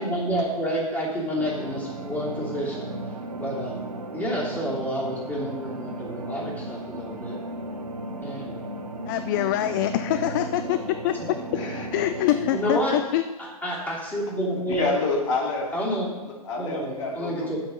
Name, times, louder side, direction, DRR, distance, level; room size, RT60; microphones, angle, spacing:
voice 1, 0.0-2.9 3.4-3.8 4.1-7.4 8.2-8.7 12.5-13.1 13.4-14.9 15.7-16.2 16.6-17.6, equal, 10° left, -5 dB, 2.9 m, -29 dB
sound 1, 1.3-12.9, right 2 dB, 85° right, 1.2 m, -35 dB
voice 2, 9.1-11.4 11.9-13.2, left 13 dB, 35° left, 11 dB, 0.4 m, -25 dB
voice 3, 11.5-11.9 14.7-15.8 16.3-17.6, left 3 dB, 50° left, 0 dB, 2.4 m, -28 dB
9.1 x 7.6 x 5.2 m, 1.2 s
figure-of-eight pair, 115°, 19 cm